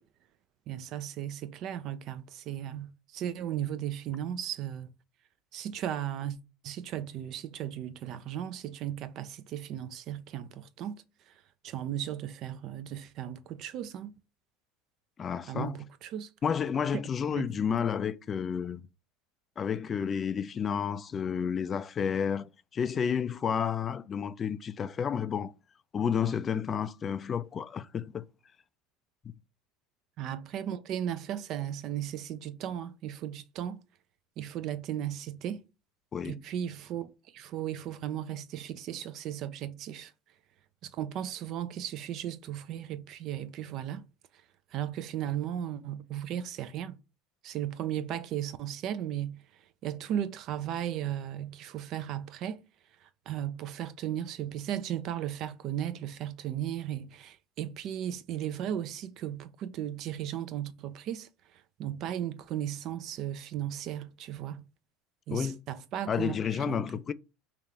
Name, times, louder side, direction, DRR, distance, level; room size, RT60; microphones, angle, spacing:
voice 1, 0.7-4.9 5.5-6.4 6.6-11.3 11.6-14.1 15.5-16.3 17.3-17.5 30.2-33.8 34.4-35.6 36.2-40.1 40.8-44.1 44.7-47.0 47.4-49.4 49.8-52.6 53.0-61.3 61.8-64.6 65.3-66.9, right 10 dB, 55° right, 0.4 m, -36 dB
voice 2, 15.2-15.7 16.4-18.9 19.6-25.5 25.9-28.3 36.1-36.4 65.3-65.6 66.1-67.1, left 7 dB, 30° left, 0.3 m, -31 dB
3.3 x 2.5 x 4.2 m
supercardioid pair, 100°, 0 cm